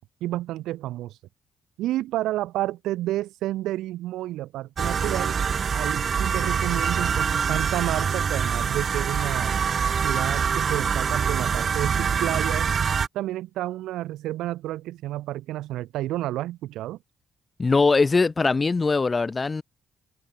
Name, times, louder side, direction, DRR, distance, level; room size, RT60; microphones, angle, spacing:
voice 1, 0.2-1.2 1.8-5.4 5.7-9.5 10.0-12.7 13.1-17.0, right 15 dB, 90° right, 2.5 m, -30 dB
sound 1, 4.8-13.1, right 6 dB, 50° right, 5.0 m, -25 dB
voice 2, 17.6-19.6, left 4 dB, 30° left, 4.4 m, -21 dB
cardioid pair, 90°, 0 cm